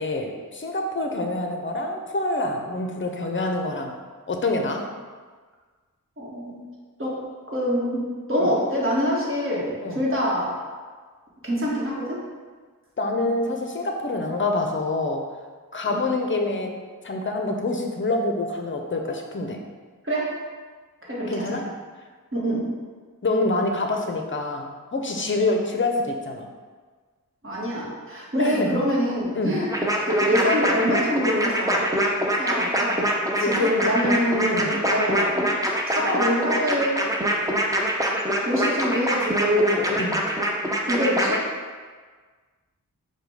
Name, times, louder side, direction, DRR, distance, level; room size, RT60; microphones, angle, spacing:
voice 1, 0.0-3.9 4.3-4.9 8.4-8.5 9.8-10.0 13.0-15.2 15.7-16.7 17.0-19.6 21.3-21.6 23.2-26.5 28.4-28.8 29.3-29.6 33.4-33.7 34.5-34.7 38.6-38.8 40.0-40.2, left 2 dB, 35° left, 3 dB, 0.6 m, -26 dB
voice 2, 6.2-6.6 7.0-7.2 7.5-10.6 11.4-12.2 15.9-16.0 20.0-20.4 21.1-21.6 22.3-22.7 27.4-29.7 30.0-31.9 32.4-33.1 33.4-37.1 38.4-39.9 40.9-41.5, equal, 35° right, -5 dB, 1.4 m, -25 dB
sound 1, 29.7-41.4, right 1 dB, 10° right, 0.5 m, -24 dB
4.8 x 2.3 x 4.8 m, 1.5 s
wide cardioid pair, 60°, 35 cm